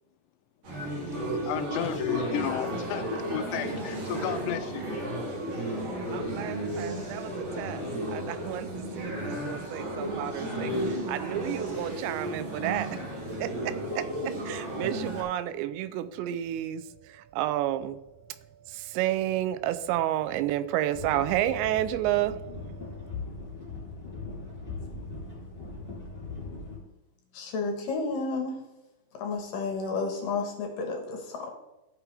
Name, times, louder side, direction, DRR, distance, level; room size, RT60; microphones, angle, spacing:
sound 1, 0.6-15.2, right 1 dB, 40° right, 3.5 m, -33 dB
voice 1, 1.4-4.9, left 10 dB, 85° left, 3.0 m, -32 dB
voice 2, 6.1-13.1 13.4-23.1, right 13 dB, 85° right, 2.8 m, -31 dB
sound 2, 20.9-26.8, left 3 dB, 15° left, 3.1 m, -39 dB
voice 3, 27.3-28.6 29.2-31.5, left 4 dB, 65° left, 2.6 m, -31 dB
16.0 x 6.0 x 3.4 m
omnidirectional pair, 5.1 m